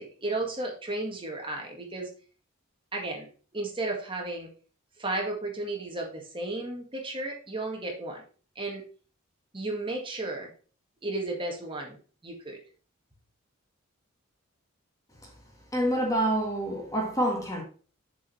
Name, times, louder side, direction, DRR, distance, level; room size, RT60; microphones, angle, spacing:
voice 1, 0.0-2.1 2.9-4.5 5.0-8.2 8.6-8.8 9.5-10.5 11.0-12.0 12.2-12.6, right 2 dB, 25° right, 1.9 m, -33 dB
voice 2, 15.7-17.6, right 1 dB, 15° left, 1.7 m, -27 dB
7.2 x 5.2 x 5.5 m
head